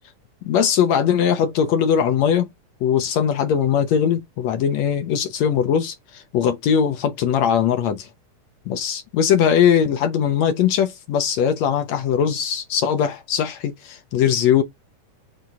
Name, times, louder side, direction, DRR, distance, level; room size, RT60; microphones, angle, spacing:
voice 1, 0.5-2.5 2.8-8.1 8.7-14.6, left 8 dB, 70° left, 2.0 m, -20 dB
7.8 x 4.3 x 4.2 m
omnidirectional pair, 3.6 m